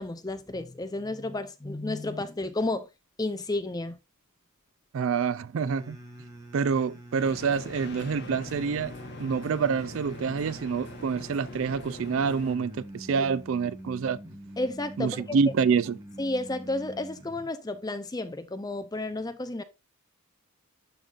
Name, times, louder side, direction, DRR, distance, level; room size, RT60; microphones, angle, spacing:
voice 1, 0.0-2.9 3.2-4.0 13.2-13.3 14.6-15.4 16.2-19.6, left 2 dB, 15° left, 0.5 m, -32 dB
voice 2, 4.9-6.0 6.5-8.9 9.2-14.2 15.0-16.0, right 5 dB, 60° right, 0.4 m, -27 dB
sound 1, 5.6-17.5, right 1 dB, 15° right, 1.3 m, -45 dB
sound 2, 7.2-12.6, left 2 dB, 50° left, 1.0 m, -44 dB
11.5 x 3.8 x 2.5 m
head